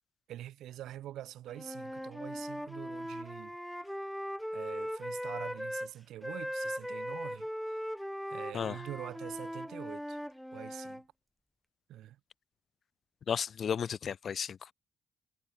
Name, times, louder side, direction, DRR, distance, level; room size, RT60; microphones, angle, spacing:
voice 1, 0.3-3.6 4.5-7.8 8.3-10.2 10.5-11.0 11.9-12.2, right 13 dB, 80° right, 7.9 m, -45 dB
Wind instrument woodwind instrument, 1.5-5.9 6.2-11.0, equal, ahead, 1.9 m, -39 dB
voice 2, 13.3-14.7, left 7 dB, 55° left, 0.9 m, -34 dB
cardioid pair, 90°, 0 cm